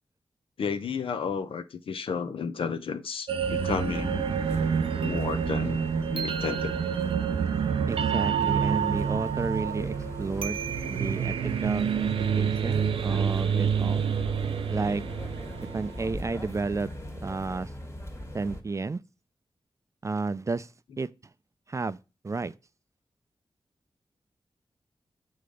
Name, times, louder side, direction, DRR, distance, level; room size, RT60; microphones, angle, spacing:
voice 1, 0.6-4.3 5.0-6.8, left 6 dB, 85° left, 0.7 m, -32 dB
sound 1, 3.3-16.3, right 7 dB, 90° right, 0.4 m, -28 dB
sound 2, 3.4-18.6, left 1 dB, 30° left, 1.5 m, -40 dB
voice 2, 7.9-10.6 10.9-11.4 11.6-12.1 12.3-14.0 14.7-15.0 15.7-16.9 17.2-17.7 18.3-19.0 20.0-20.7 21.0-21.1 21.7-22.0 22.2-22.5, right 3 dB, 35° right, 0.4 m, -31 dB
6.7 x 4.0 x 5.0 m
cardioid pair, 60°, 9 cm